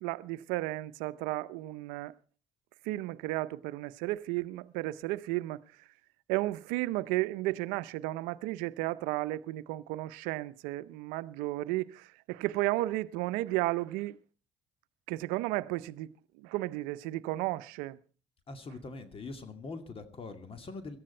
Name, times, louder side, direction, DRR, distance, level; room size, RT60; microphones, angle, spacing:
voice 1, 0.0-2.1 2.8-5.6 6.3-14.2 15.1-16.1 16.4-18.0, right 18 dB, 80° right, 0.6 m, -33 dB
voice 2, 18.5-21.0, left 3 dB, 40° left, 2.3 m, -43 dB
17.5 x 14.0 x 4.4 m
hypercardioid pair, 65°, 14 cm